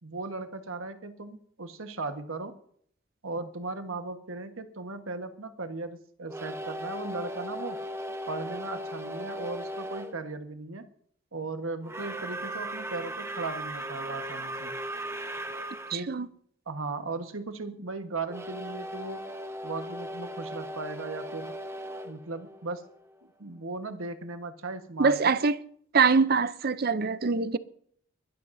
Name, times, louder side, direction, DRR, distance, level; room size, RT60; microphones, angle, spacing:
voice 1, 0.0-2.5 3.2-7.8 8.3-10.8 11.3-14.8 15.9-16.1 16.7-19.2 19.6-21.6 22.0-22.8 23.4-25.3, right 3 dB, 75° right, 1.3 m, -37 dB
sound 1, 6.3-10.1 11.8-16.0 18.3-23.1, right 1 dB, 10° right, 0.8 m, -37 dB
voice 2, 15.9-16.3 25.0-25.6 25.9-27.6, right 5 dB, 45° right, 0.6 m, -24 dB
23.0 x 13.0 x 2.7 m
head